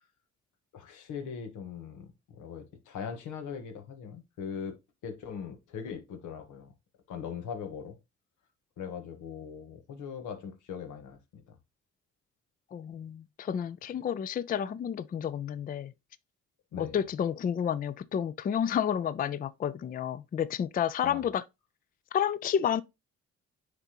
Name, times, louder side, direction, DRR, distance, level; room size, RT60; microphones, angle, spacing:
voice 1, 0.7-4.8 5.0-6.7 7.1-8.0 8.8-11.2 11.5-11.6 16.7-17.0 21.0-21.2, left 7 dB, 90° left, 1.3 m, -40 dB
voice 2, 12.7-15.9 16.8-21.4 22.1-22.8, left 8 dB, 30° left, 0.4 m, -30 dB
9.5 x 3.5 x 2.9 m
cardioid pair, 90°, 30 cm